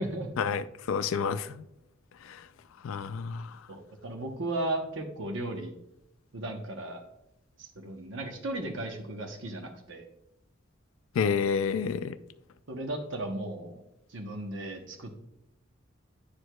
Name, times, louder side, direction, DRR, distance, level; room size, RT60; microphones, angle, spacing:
voice 1, 0.4-1.6 2.2-2.4 2.8-3.6 11.2-12.2, left 6 dB, 75° left, 0.4 m, -29 dB
voice 2, 3.7-5.7 6.3-7.0 7.6-10.0 12.7-13.8 14.1-15.1, right 1 dB, 65° right, 0.8 m, -35 dB
10.0 x 4.7 x 2.2 m
head